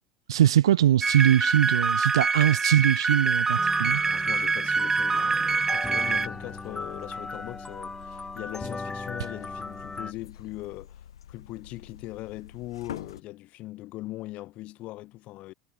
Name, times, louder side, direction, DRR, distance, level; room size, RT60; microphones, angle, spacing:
voice 1, 0.3-4.0, right 11 dB, 80° right, 0.5 m, -22 dB
sound 1, 1.0-6.3, right 4 dB, 20° right, 0.6 m, -25 dB
sound 2, 3.6-10.1, left 3 dB, 15° left, 0.8 m, -37 dB
voice 2, 4.0-15.5, left 18 dB, 55° left, 4.4 m, -40 dB
sound 3, 6.1-13.2, left 9 dB, 80° left, 2.9 m, -47 dB
hypercardioid pair, 75°, 3 cm